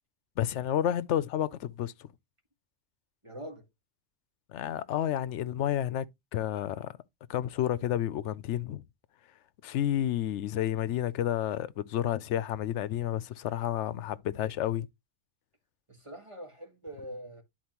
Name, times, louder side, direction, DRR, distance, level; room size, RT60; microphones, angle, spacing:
voice 1, 0.4-2.1 4.5-6.1 6.3-6.9 7.3-8.8 9.6-14.9, left 11 dB, 85° left, 0.9 m, -30 dB
voice 2, 3.2-3.7 15.9-17.4, right 1 dB, 25° right, 1.7 m, -43 dB
11.0 x 4.4 x 2.9 m
omnidirectional pair, 1.2 m